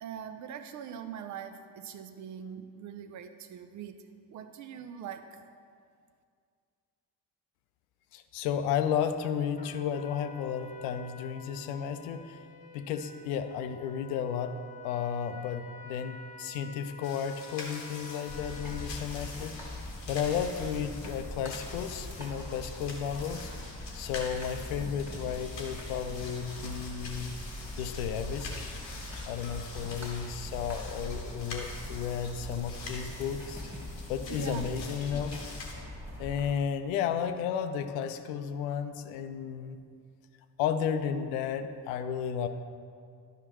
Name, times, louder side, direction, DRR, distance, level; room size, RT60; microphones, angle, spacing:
voice 1, 0.0-4.0 4.3-5.4 32.5-32.7 34.3-34.7, right 8 dB, 40° right, 9 dB, 0.5 m, -42 dB
voice 2, 8.1-12.4 12.7-14.5 14.8-19.5 20.1-23.5 23.9-27.3 27.8-28.7 29.3-33.6 34.1-35.3 36.2-39.8 40.6-42.5, left 8 dB, 60° left, 9 dB, 0.6 m, -33 dB
Trumpet, 9.6-19.1, left 4 dB, 15° left, 0.5 m, -50 dB
sound 1, 17.0-35.7, left 3 dB, 80° left, 1.1 m, -45 dB
sound 2, 18.3-36.5, left 1 dB, 5° right, 1.9 m, -42 dB
11.5 x 5.7 x 2.9 m, 2.2 s
figure-of-eight pair, 45°, 50 cm